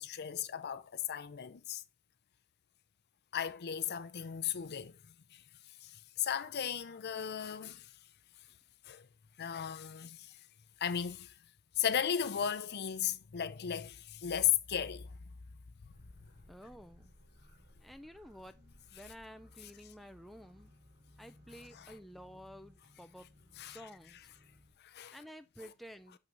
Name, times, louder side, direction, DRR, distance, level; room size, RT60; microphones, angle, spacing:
voice 1, 0.0-1.8 3.3-4.9 5.3-5.4 5.8-7.9 8.9-9.1 9.4-10.4 10.8-11.3 11.8-15.1 21.8-21.9 23.6-23.8 24.8-25.2, left 9 dB, 50° left, 0.5 m, -35 dB
sound 1, 15.9-24.7, left 1 dB, 80° right, 3.8 m, -62 dB
voice 2, 16.5-17.1 17.8-18.6 18.9-20.7 21.2-23.3 23.6-24.3 25.1-26.2, equal, ahead, 0.3 m, -52 dB
6.7 x 5.9 x 3.0 m
head